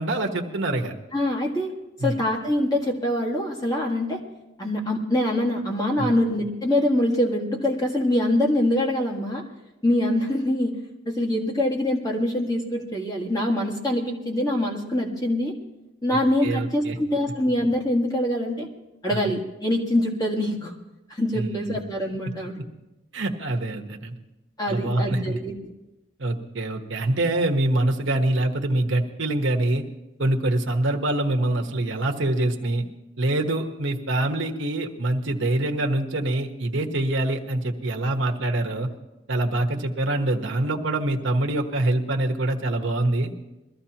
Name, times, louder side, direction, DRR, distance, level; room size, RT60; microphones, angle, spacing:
voice 1, 0.0-0.9 2.0-2.2 6.0-6.1 16.1-17.0 19.1-19.3 21.3-21.7 22.3-22.4 23.1-24.1 24.7-25.4 26.2-29.8 30.2-32.9 33.2-38.9 39.3-43.3, right 1 dB, 75° right, 3 dB, 1.2 m, -25 dB
voice 2, 1.1-1.7 2.0-4.2 4.6-9.4 9.8-10.8 11.1-15.6 16.0-18.7 19.0-20.7 21.1-22.5 24.6-25.5, left 1 dB, 20° left, -1 dB, 1.8 m, -24 dB
22.0 x 14.0 x 2.9 m, 1.0 s
head